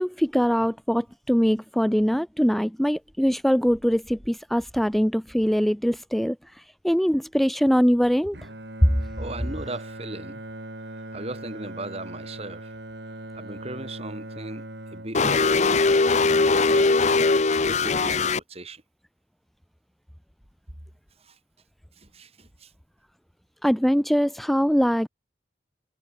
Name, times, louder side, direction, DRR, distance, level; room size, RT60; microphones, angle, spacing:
voice 1, 0.0-8.4 23.6-25.1, equal, ahead, 0.4 m, -22 dB
Bowed string instrument, 8.3-16.6, right 1 dB, 75° right, 6.6 m, -40 dB
voice 2, 9.2-10.4 10.9-12.7 13.1-17.4 17.8-18.8 21.2-21.4 22.0-22.7, right 2 dB, 35° right, 4.5 m, -38 dB
sound 1, 15.1-18.4, left 3 dB, 40° left, 0.8 m, -20 dB
head